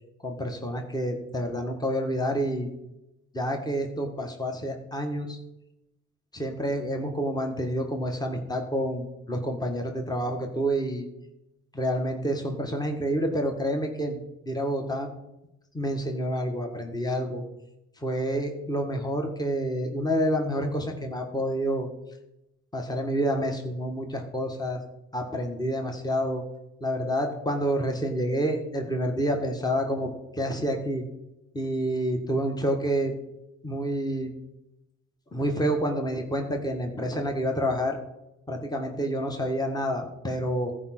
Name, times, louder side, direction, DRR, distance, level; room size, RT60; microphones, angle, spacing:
voice 1, 0.2-2.7 3.3-5.4 6.3-11.1 11.7-14.2 14.5-15.1 15.7-17.4 18.0-21.9 22.7-24.8 25.1-26.4 26.8-31.0 31.5-33.1 33.6-34.3 35.3-38.0 38.5-40.7, equal, 15° left, 2 dB, 1.7 m, -28 dB
14.0 x 5.0 x 6.0 m, 0.91 s
cardioid pair, 90°, 30 cm